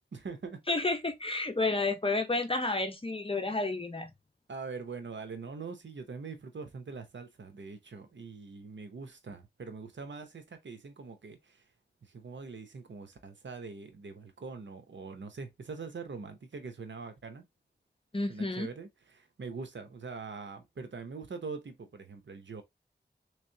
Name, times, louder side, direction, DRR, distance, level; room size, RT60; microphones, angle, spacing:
voice 1, 0.1-0.6 4.5-11.6 12.0-17.4 18.3-22.6, right 4 dB, 90° right, 0.8 m, -43 dB
voice 2, 0.7-4.1 18.1-18.7, left 2 dB, 30° left, 0.9 m, -30 dB
3.4 x 3.3 x 2.8 m
cardioid pair, 40°, 18 cm